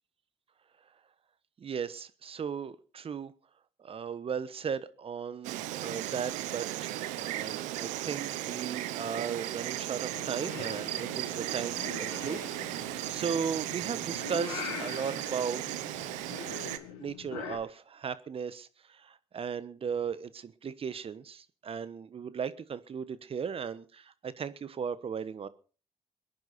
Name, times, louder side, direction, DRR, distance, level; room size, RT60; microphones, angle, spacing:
voice 1, 1.6-3.3 3.8-15.6 16.9-25.5, right 7 dB, 50° right, 15 dB, 1.2 m, -36 dB
Insect, 5.4-16.8, right 14 dB, 80° right, 0.9 m, -36 dB
Purr / Meow, 10.1-17.6, left 10 dB, 85° left, 1.7 m, -44 dB
23.0 x 10.5 x 4.3 m, 0.38 s
hypercardioid pair, 50°, 12 cm